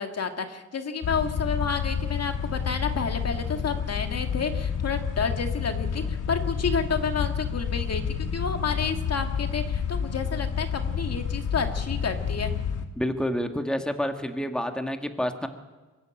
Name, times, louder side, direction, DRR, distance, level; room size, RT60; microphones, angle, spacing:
voice 1, 0.0-12.5, left 5 dB, 55° left, 6 dB, 2.2 m, -30 dB
sound 1, 1.0-12.9, left 7 dB, 85° left, 1.9 m, -29 dB
voice 2, 13.0-15.5, equal, 5° left, 6 dB, 1.9 m, -28 dB
23.0 x 13.5 x 9.1 m, 1.3 s
cardioid pair, 90°, 30 cm